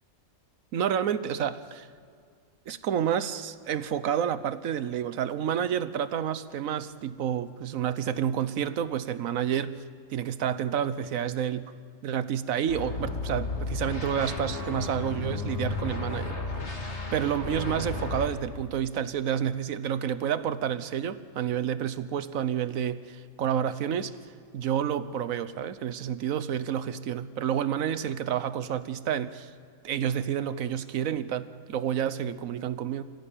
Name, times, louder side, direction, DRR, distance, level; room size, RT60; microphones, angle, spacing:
voice 1, 0.7-1.9 2.7-9.8 10.1-11.7 12.0-16.4 16.8-24.1 24.5-29.5 29.8-33.0, right 9 dB, 75° right, 14 dB, 1.3 m, -29 dB
sound 1, 12.7-18.3, left 3 dB, 55° left, 2.7 m, -33 dB
26.0 x 15.5 x 8.9 m, 2.3 s
omnidirectional pair, 1.4 m